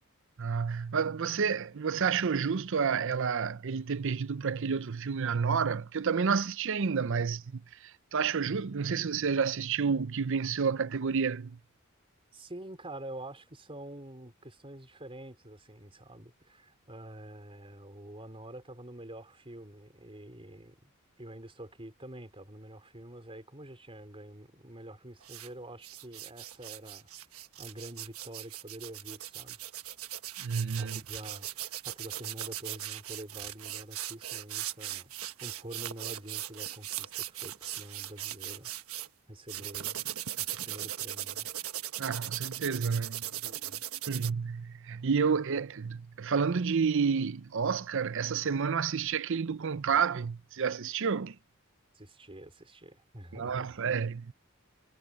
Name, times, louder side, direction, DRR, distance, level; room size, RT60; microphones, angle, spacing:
voice 1, 0.4-7.6 8.1-11.6 30.4-31.0 42.0-43.3 44.1-51.4 53.3-54.3, right 6 dB, 65° right, 0.6 m, -30 dB
voice 2, 12.3-20.8 21.2-27.1 27.6-29.6 30.7-38.7 39.3-40.0 40.4-41.5 43.4-43.8 51.9-53.9, right 1 dB, 25° right, 4.4 m, -47 dB
sound 1, 25.2-25.5 25.8-39.1 39.5-44.3, right 13 dB, 90° right, 1.3 m, -39 dB
head